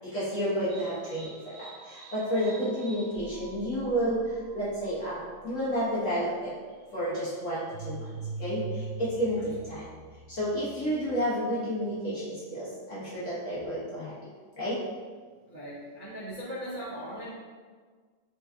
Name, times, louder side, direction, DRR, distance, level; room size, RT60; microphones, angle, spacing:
voice 1, 0.0-6.5 6.9-8.0 8.4-9.9 10.3-14.2 14.6-14.8, equal, 45° left, -10 dB, 1.2 m, -31 dB
sound 1, 0.7-11.3, right 3 dB, 65° right, 1.1 m, -44 dB
voice 2, 15.5-17.3, equal, 35° right, -12 dB, 0.8 m, -39 dB
4.4 x 3.0 x 3.5 m, 1.5 s
omnidirectional pair, 2.3 m